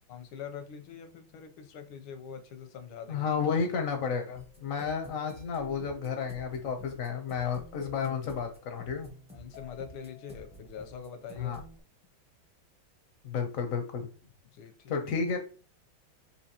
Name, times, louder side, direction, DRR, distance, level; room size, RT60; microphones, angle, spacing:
voice 1, 0.1-3.3 9.3-11.6 14.5-15.0, left 7 dB, 85° left, 7 dB, 1.6 m, -44 dB
voice 2, 3.1-9.1 11.3-11.6 13.2-14.1 14.9-15.4, left 6 dB, 65° left, 5 dB, 0.8 m, -32 dB
sound 1, 4.3-11.8, equal, 10° right, 0.4 m, -50 dB
6.1 x 2.9 x 2.8 m, 0.37 s
omnidirectional pair, 2.2 m